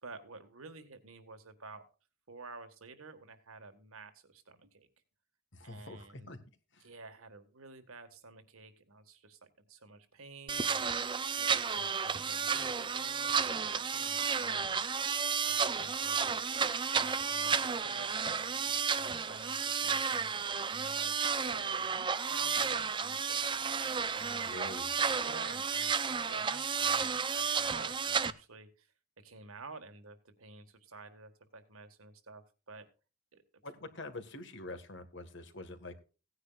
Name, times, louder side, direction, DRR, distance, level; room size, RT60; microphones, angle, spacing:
voice 1, 0.0-1.9 2.3-4.9 5.6-6.3 6.8-11.1 11.4-16.6 16.9-20.3 20.7-24.6 25.1-32.9 33.3-33.4, right 3 dB, 85° right, 9 dB, 1.7 m, -51 dB
voice 2, 5.5-6.4 6.7-6.9 24.4-24.9 33.6-36.0, left 2 dB, 60° left, 9 dB, 1.7 m, -45 dB
sound 1, 10.5-28.3, right 6 dB, 20° right, 0.5 m, -32 dB
17.0 x 9.7 x 2.4 m, 0.33 s
head